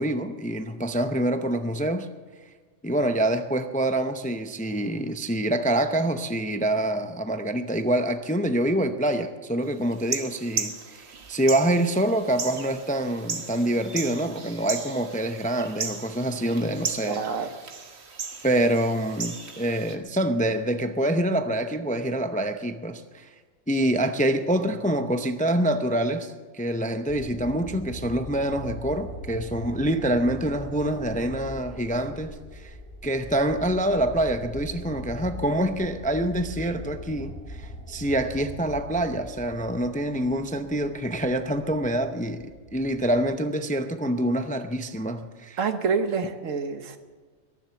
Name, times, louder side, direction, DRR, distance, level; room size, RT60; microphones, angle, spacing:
voice 1, 0.0-2.1 2.8-17.2 18.4-23.3 23.7-32.8 33.0-45.6, right 1 dB, 10° left, 8 dB, 0.4 m, -26 dB
sound 1, 9.9-20.0, right 5 dB, 60° right, 1.4 m, -36 dB
voice 2, 17.0-17.5 45.6-47.0, right 5 dB, 85° right, 8 dB, 1.4 m, -27 dB
sound 2, 27.1-43.3, equal, 50° left, 2.9 m, -41 dB
22.5 x 7.6 x 7.0 m, 1.4 s
omnidirectional pair, 1.3 m